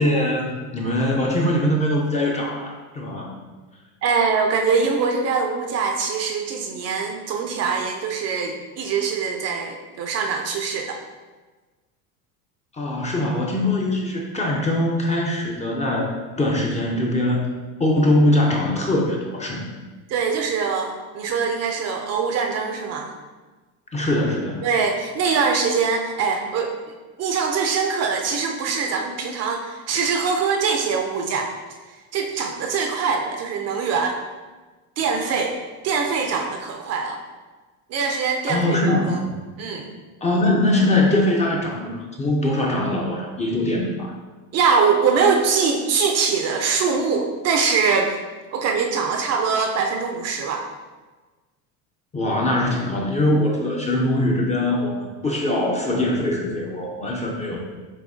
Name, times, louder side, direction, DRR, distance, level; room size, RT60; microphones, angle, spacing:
voice 1, 0.0-3.3 12.7-16.1 16.4-17.4 17.8-19.6 23.9-24.7 38.5-39.4 40.2-44.1 52.1-57.6, left 1 dB, 15° left, -1 dB, 0.5 m, -22 dB
voice 2, 4.0-11.0 20.1-23.1 24.6-26.7 27.2-31.5 32.1-34.2 35.0-35.6 35.8-37.2 37.9-39.2 39.6-39.8 44.5-48.2 48.5-50.6, right 5 dB, 40° right, 3 dB, 0.5 m, -23 dB
7.5 x 2.7 x 2.6 m, 1.3 s
supercardioid pair, 120°, 42 cm